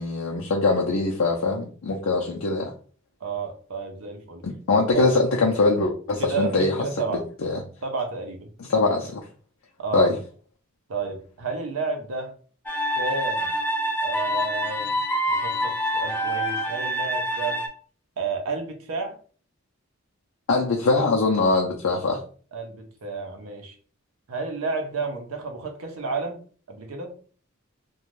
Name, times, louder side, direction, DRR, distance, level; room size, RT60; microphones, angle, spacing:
voice 1, 0.0-2.7 4.4-6.8 7.1-7.6 8.6-9.2 9.9-10.1 20.5-22.2, left 3 dB, 75° left, -1 dB, 0.5 m, -22 dB
voice 2, 3.2-4.5 4.9-5.1 6.2-7.2 7.8-8.5 9.8-10.1 10.9-12.3 12.9-13.5 14.0-15.0 15.3-17.6 18.2-19.2 22.5-23.7 24.3-26.4 26.7-27.1, right 4 dB, 85° right, 3 dB, 0.6 m, -31 dB
sound 1, 12.7-17.7, equal, 10° left, 0.5 m, -26 dB
2.5 x 2.2 x 3.1 m, 0.42 s
head